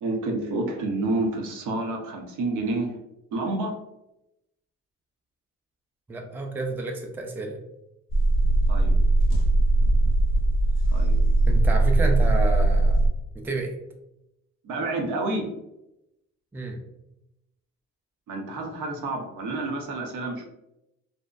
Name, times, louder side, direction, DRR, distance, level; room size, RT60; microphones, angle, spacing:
voice 1, 0.0-2.9 3.3-3.7 8.7-8.9 10.9-11.2 14.6-15.5 18.3-20.5, right 2 dB, 80° right, 2 dB, 0.6 m, -29 dB
voice 2, 6.1-7.6 11.5-13.0 13.3-13.8 16.5-16.8, right 2 dB, 5° right, 2 dB, 0.3 m, -30 dB
sound 1, 8.1-13.1, right 2 dB, 45° left, 0.5 m, -20 dB
2.6 x 2.1 x 2.3 m, 0.88 s
cardioid pair, 90°, 30 cm